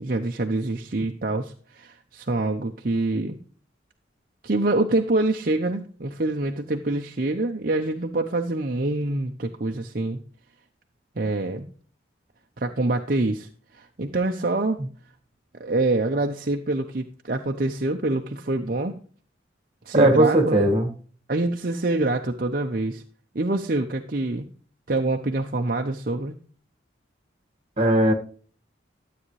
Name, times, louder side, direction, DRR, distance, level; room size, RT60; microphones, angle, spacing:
voice 1, 0.0-3.4 4.4-10.2 11.2-11.7 12.6-13.5 13.7-14.8 15.5-19.0 19.9-20.6 21.3-23.0 23.3-24.5 24.9-26.4, right 2 dB, 50° right, 4 dB, 0.7 m, -25 dB
voice 2, 19.9-20.9 27.8-28.1, right 1 dB, 30° right, 5 dB, 1.7 m, -18 dB
12.5 x 8.5 x 3.2 m, 0.43 s
head